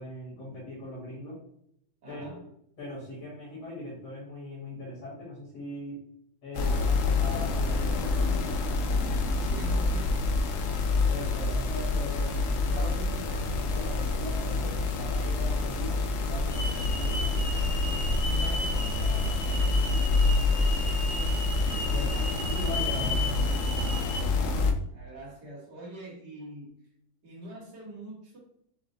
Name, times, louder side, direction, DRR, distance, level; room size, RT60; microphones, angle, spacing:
voice 1, 0.0-1.4 2.1-2.4 2.8-6.0 6.4-8.4 11.1-17.6 21.9-23.8, left 1 dB, 85° left, -8 dB, 2.4 m, -40 dB
voice 2, 2.0-2.4 9.3-10.2 18.3-20.1 24.9-26.9 27.2-28.4, right 1 dB, 85° right, -5 dB, 2.3 m, -44 dB
sound 1, 6.5-24.7, left 3 dB, 65° left, 0.8 m, -27 dB
Hiss / Alarm, 16.5-24.2, left 1 dB, 30° left, 1.0 m, -36 dB
6.2 x 2.1 x 3.9 m, 0.72 s
omnidirectional pair, 1.8 m